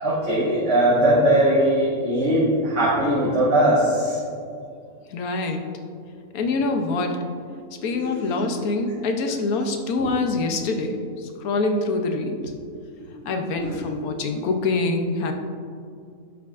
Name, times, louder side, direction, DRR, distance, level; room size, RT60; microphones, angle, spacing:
voice 1, 0.0-4.2 8.1-8.3 10.0-10.1 12.4-12.5 13.6-13.8, right 1 dB, 55° right, -12 dB, 2.2 m, -20 dB
voice 2, 5.1-5.7 6.3-7.2 7.8-12.4 13.2-15.3, left 3 dB, 85° left, 5 dB, 1.2 m, -25 dB
10.5 x 6.0 x 2.5 m, 2.3 s
omnidirectional pair, 1.5 m